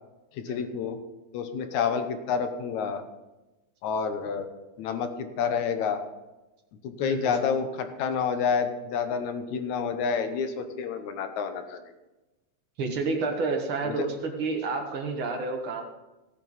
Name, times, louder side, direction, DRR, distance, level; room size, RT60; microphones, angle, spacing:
voice 1, 0.3-1.0 1.3-3.0 3.8-4.5 4.8-6.0 6.8-11.8 13.8-14.1, left 6 dB, 75° left, 8 dB, 2.3 m, -29 dB
voice 2, 7.0-7.4 12.8-15.8, right 3 dB, 50° right, 3 dB, 1.9 m, -30 dB
16.5 x 9.0 x 4.1 m, 1.0 s
omnidirectional pair, 3.5 m